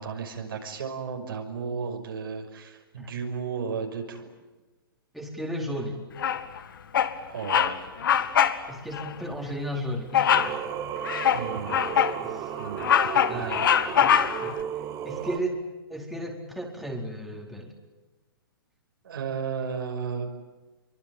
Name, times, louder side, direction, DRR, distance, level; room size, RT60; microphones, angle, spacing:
voice 1, 0.0-4.3 7.3-8.1 11.3-12.0 12.6-13.7 19.0-20.3, right 6 dB, 70° right, 3 dB, 6.0 m, -34 dB
voice 2, 5.1-6.0 8.7-10.3 12.2-12.6 13.3-13.7 14.0-14.1 14.4-14.5 15.0-15.6 15.9-17.7, equal, ahead, 0 dB, 4.5 m, -34 dB
Bird vocalization bird call bird song, 6.2-6.6 6.9-7.2 7.4-7.7 8.0-8.6 8.9-9.1 10.1-10.6 11.0-12.2 12.6-14.5, left 9 dB, 65° left, 2.1 m, -23 dB
Singing, 10.3-15.4, right 10 dB, 30° right, 2.3 m, -34 dB
27.0 x 24.5 x 9.0 m, 1.1 s
hypercardioid pair, 125°, 12 cm